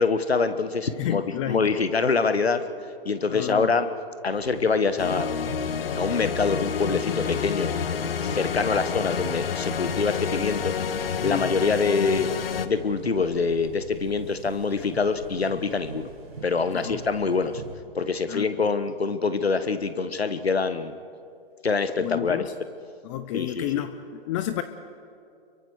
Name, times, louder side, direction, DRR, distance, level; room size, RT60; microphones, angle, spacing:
voice 1, 0.0-2.6 3.0-3.9 4.2-5.3 5.9-12.3 12.6-16.1 16.4-17.6 17.9-21.0 21.6-22.4 23.3-23.8, left 4 dB, 90° left, 11 dB, 1.4 m, -25 dB
voice 2, 1.0-1.6 3.3-3.7 11.2-11.5 16.7-17.0 18.3-18.7 22.0-22.5 23.0-24.0 24.3-24.6, left 13 dB, 30° left, 11 dB, 0.9 m, -30 dB
sound 1, 4.3-17.7, right 3 dB, 80° right, 4.3 m, -42 dB
sound 2, 5.0-12.7, left 7 dB, 70° left, 1.2 m, -29 dB
28.5 x 23.0 x 4.9 m, 2.5 s
figure-of-eight pair, 125°, 30 cm